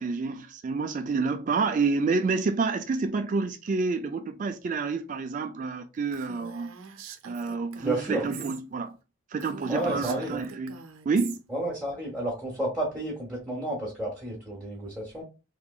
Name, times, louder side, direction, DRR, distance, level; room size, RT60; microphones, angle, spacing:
voice 1, 0.0-6.7 7.2-9.0 9.3-10.7 11.1-11.4, right 4 dB, 40° right, 0.3 m, -28 dB
Female speech woman speaking, 6.1-8.6 8.9-9.0 9.4-11.4, right 7 dB, 90° right, 0.6 m, -44 dB
voice 2, 7.8-8.2 9.7-10.4 11.5-15.2, right 1 dB, 5° right, 1.1 m, -31 dB
3.7 x 3.0 x 2.3 m
head